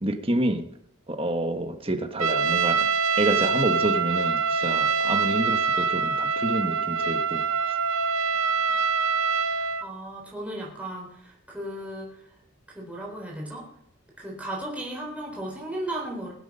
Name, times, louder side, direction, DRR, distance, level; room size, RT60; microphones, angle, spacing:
voice 1, 0.0-0.7 1.1-2.8 3.2-7.4, right 1 dB, 25° right, 6 dB, 1.3 m, -28 dB
Trumpet, 2.2-9.9, right 5 dB, 75° right, 0.9 m, -24 dB
voice 2, 9.5-12.1 12.7-13.6 14.2-16.3, right 1 dB, 5° right, -3 dB, 4.0 m, -35 dB
21.5 x 8.1 x 5.6 m, 0.71 s
head